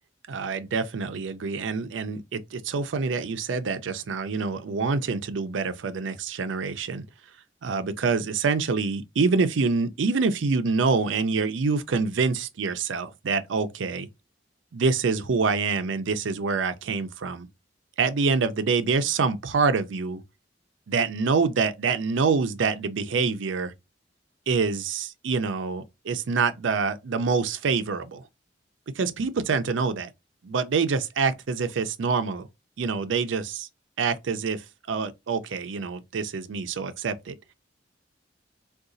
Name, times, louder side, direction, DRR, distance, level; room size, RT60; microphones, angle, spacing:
voice 1, 0.3-7.0 7.6-14.1 14.7-17.5 18.0-20.2 20.9-23.7 24.5-28.2 29.0-30.1 30.4-32.5 32.8-33.7 34.0-34.6 34.9-37.4, right 4 dB, 90° right, 0.5 m, -26 dB
3.8 x 2.3 x 2.5 m
head